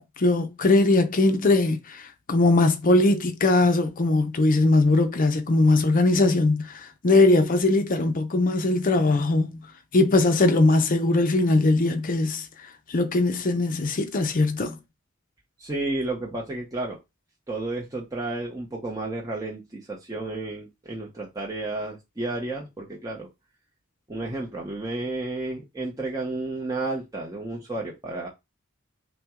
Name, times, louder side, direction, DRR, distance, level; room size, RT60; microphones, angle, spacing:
voice 1, 0.0-9.6 9.9-12.5 12.9-14.8, left 2 dB, 40° left, 0.6 m, -21 dB
voice 2, 15.6-17.0 17.5-23.3 24.1-28.3, right 2 dB, 15° right, 0.7 m, -32 dB
5.7 x 2.2 x 3.6 m
head